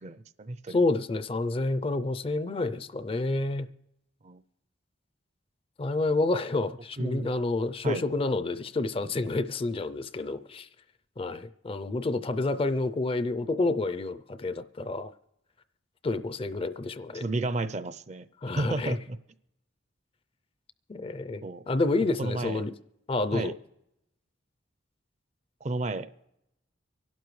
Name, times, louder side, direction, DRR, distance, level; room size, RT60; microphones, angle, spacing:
voice 1, 0.0-0.8 4.2-4.4 7.0-7.3 7.8-8.0 17.1-18.3 18.6-19.2 21.4-21.6 22.2-22.6 23.3-23.5 25.6-26.3, right 2 dB, 35° right, 0.5 m, -32 dB
voice 2, 0.7-3.7 5.8-10.7 11.2-15.1 16.0-17.2 18.4-19.0 20.9-22.7 23.1-23.5, left 2 dB, 30° left, 0.4 m, -29 dB
25.0 x 12.0 x 3.2 m
head